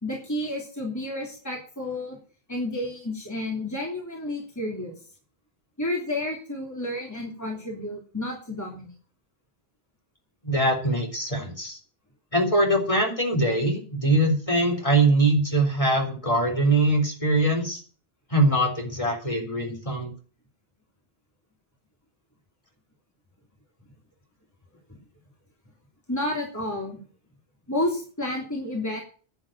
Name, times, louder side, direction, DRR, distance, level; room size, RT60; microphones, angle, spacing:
voice 1, 0.0-2.2 2.5-4.9 5.8-8.9 24.9-25.0 26.1-27.0 27.7-29.0, left 1 dB, 15° left, -1 dB, 3.2 m, -31 dB
voice 2, 10.4-11.8 12.3-17.8 18.3-20.1, right 1 dB, 30° left, 1 dB, 3.8 m, -22 dB
11.0 x 7.9 x 8.9 m, 0.40 s
omnidirectional pair, 1.0 m